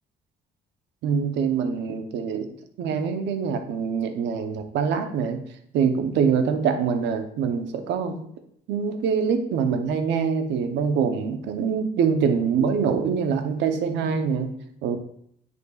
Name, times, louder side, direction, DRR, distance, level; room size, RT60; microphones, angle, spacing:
voice 1, 1.0-5.4 5.7-8.2 8.7-14.5 14.8-15.0, right 6 dB, 85° right, 7 dB, 0.8 m, -24 dB
9.3 x 5.4 x 2.4 m, 0.69 s
cardioid pair, 105°, 18 cm